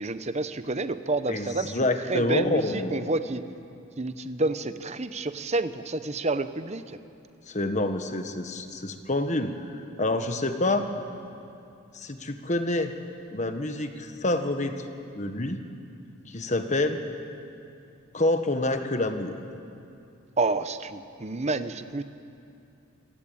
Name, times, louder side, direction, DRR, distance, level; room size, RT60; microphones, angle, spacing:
voice 1, 0.0-1.7 2.1-3.4 4.0-6.8 20.4-22.0, right 2 dB, 30° right, 11 dB, 0.8 m, -29 dB
voice 2, 1.3-3.1 7.5-10.9 11.9-12.9 13.3-14.7 15.1-15.6 16.3-17.0 18.1-19.4, left 2 dB, 35° left, 7 dB, 1.4 m, -27 dB
26.0 x 17.5 x 8.7 m, 2.6 s
head